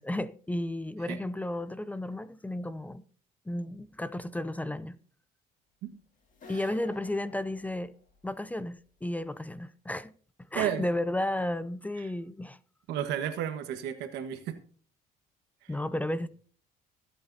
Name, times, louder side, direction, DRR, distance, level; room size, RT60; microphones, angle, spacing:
voice 1, 0.0-3.0 3.5-5.0 6.5-7.9 8.2-10.1 10.5-12.6 15.7-16.3, left 1 dB, 10° left, 0.5 m, -33 dB
sound 1, 6.3-8.3, left 2 dB, 50° left, 2.2 m, -50 dB
voice 2, 10.5-10.8 12.9-14.6 15.6-15.7, right 10 dB, 90° right, 1.5 m, -32 dB
23.5 x 8.7 x 2.8 m
cardioid pair, 110°, 17 cm